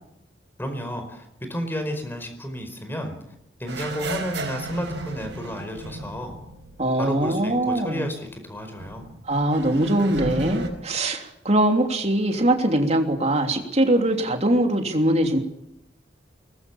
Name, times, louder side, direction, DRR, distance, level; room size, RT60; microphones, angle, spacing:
voice 1, 0.6-3.2 3.6-6.4 7.0-9.1, equal, 10° left, 6 dB, 4.8 m, -31 dB
sound 1, 3.7-7.4 7.7-7.8 8.8-10.7, right 1 dB, 85° right, 4.7 m, -33 dB
voice 2, 6.8-8.0 9.3-15.4, right 1 dB, 40° right, 4 dB, 3.2 m, -22 dB
24.0 x 20.5 x 7.3 m, 0.82 s
head